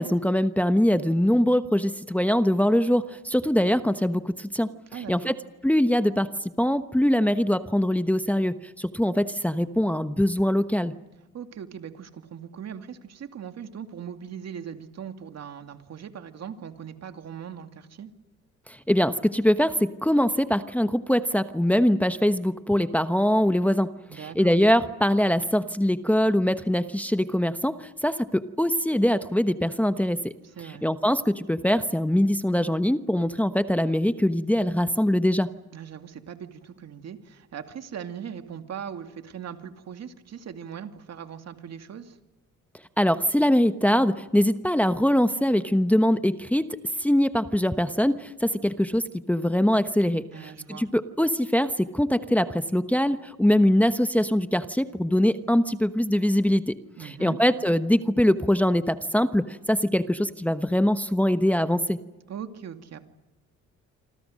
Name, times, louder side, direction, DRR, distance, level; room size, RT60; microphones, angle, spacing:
voice 1, 0.0-4.7 5.1-5.4 5.6-6.3 6.6-10.9 18.7-23.9 24.2-30.3 30.8-35.5 43.0-56.7 57.0-62.0, equal, 5° left, 10 dB, 1.1 m, -23 dB
voice 2, 4.9-5.4 11.3-18.1 24.1-24.6 30.4-30.8 35.7-42.2 50.3-50.9 57.0-57.4 62.3-63.1, right 8 dB, 60° right, 7 dB, 2.4 m, -40 dB
27.5 x 25.5 x 6.5 m, 1.1 s
cardioid pair, 90°, 30 cm